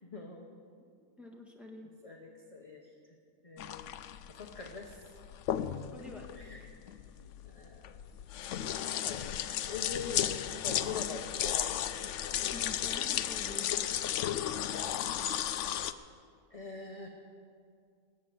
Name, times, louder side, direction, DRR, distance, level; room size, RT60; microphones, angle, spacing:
voice 1, 0.0-0.5 2.0-3.2 3.4-3.9 4.3-5.2 6.3-6.6 7.1-8.0 8.6-8.8 9.0-9.4 9.7-11.8 14.8-15.0 16.5-17.1, left 4 dB, 25° left, 0 dB, 1.0 m, -44 dB
voice 2, 1.2-1.9 5.9-6.3 6.6-6.7 12.5-13.7, left 1 dB, ahead, 0 dB, 1.6 m, -47 dB
sound 1, 3.6-15.9, left 11 dB, 70° left, 0.7 m, -34 dB
19.0 x 8.3 x 7.7 m, 2.3 s
omnidirectional pair, 1.7 m